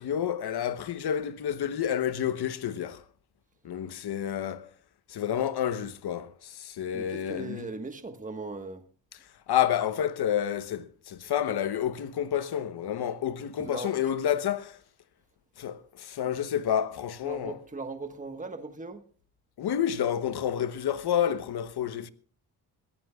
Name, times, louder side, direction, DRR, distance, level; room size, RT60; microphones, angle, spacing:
voice 1, 0.0-3.0 3.6-4.7 5.1-7.7 9.5-14.8 15.6-17.6 19.6-22.1, left 9 dB, 65° left, 1.0 m, -29 dB
voice 2, 6.9-8.8 13.6-14.3 17.2-19.0, right 3 dB, 20° right, 1.4 m, -39 dB
22.5 x 14.5 x 2.4 m
supercardioid pair, 55°, 42 cm